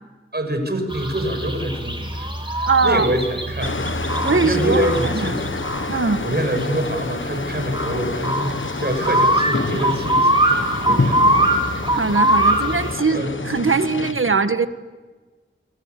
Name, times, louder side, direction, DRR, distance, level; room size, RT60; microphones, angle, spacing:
voice 1, 0.3-11.5 13.1-13.4 14.1-14.2, right 1 dB, 50° right, 6 dB, 6.9 m, -26 dB
sound 1, 0.9-12.9, right 1 dB, 25° right, 4.7 m, -22 dB
voice 2, 2.7-3.1 4.2-4.9 5.1-5.3 5.9-6.3 10.9-11.0 11.9-14.7, right 4 dB, 75° right, 9 dB, 1.6 m, -21 dB
sound 2, 3.6-14.1, left 4 dB, 65° left, 1.2 m, -28 dB
28.5 x 24.5 x 8.4 m, 1.3 s
wide cardioid pair, 50°, 21 cm